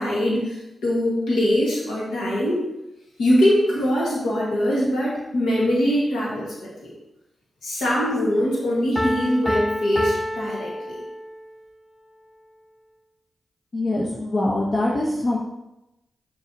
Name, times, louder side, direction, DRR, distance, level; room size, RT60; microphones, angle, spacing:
voice 1, 0.0-2.6 3.2-6.9 7.6-11.0, equal, 85° left, -5 dB, 1.8 m, -22 dB
Piano, 9.0-11.5, equal, 15° left, 1.0 m, -28 dB
voice 2, 13.7-15.4, left 2 dB, 55° left, -5 dB, 1.1 m, -23 dB
6.6 x 5.7 x 3.0 m, 0.91 s
supercardioid pair, 45°, 0 cm